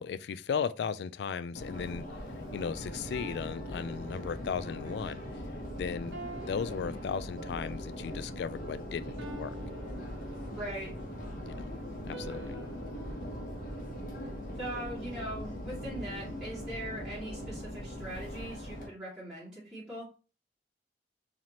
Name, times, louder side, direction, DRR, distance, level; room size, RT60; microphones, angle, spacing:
voice 1, 0.0-2.1 2.5-5.4 5.7-6.2 6.5-9.6 11.4-11.7 12.1-12.6, left 6 dB, 70° left, 0.3 m, -36 dB
Subway metro underground, 1.5-18.9, equal, 50° left, 1.1 m, -40 dB
sound 1, 3.1-4.7 6.1-7.8 9.2-10.8 12.1-14.5, right 2 dB, 85° right, 1.1 m, -49 dB
voice 2, 10.5-10.9 14.6-20.1, right 1 dB, 5° right, 2.1 m, -41 dB
4.1 x 3.0 x 2.9 m
head